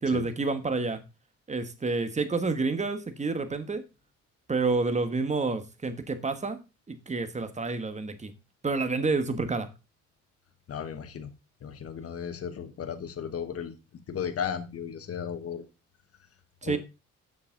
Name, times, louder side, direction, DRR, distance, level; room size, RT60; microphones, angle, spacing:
voice 1, 0.0-1.0 1.5-3.8 4.5-6.6 6.9-8.3 8.6-9.7 16.6-16.8, right 3 dB, 25° right, 9 dB, 1.5 m, -29 dB
voice 2, 10.7-11.3 11.6-13.7 14.1-15.6 16.6-16.8, left 7 dB, 50° left, 8 dB, 1.3 m, -35 dB
7.3 x 6.9 x 3.9 m, 0.27 s
cardioid pair, 90°, 30 cm